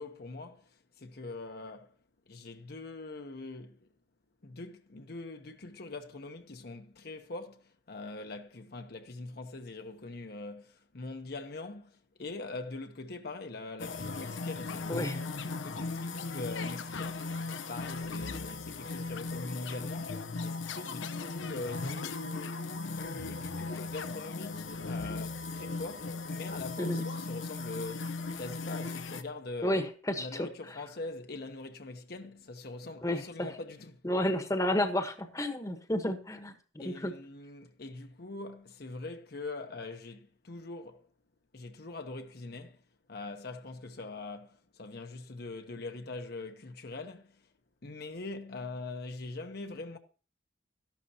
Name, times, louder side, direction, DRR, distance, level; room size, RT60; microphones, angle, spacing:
voice 1, 0.0-1.9 2.3-3.9 4.4-17.4 17.7-29.8 30.2-34.0 36.8-41.1 41.5-42.8 43.1-47.5 47.8-50.0, left 3 dB, 55° left, 0.9 m, -43 dB
sound 1, 13.8-29.2, left 3 dB, 85° left, 0.8 m, -37 dB
voice 2, 29.6-30.5 33.0-33.2 34.0-36.5 36.8-37.1, left 1 dB, 15° left, 1.1 m, -31 dB
13.5 x 11.5 x 2.8 m
head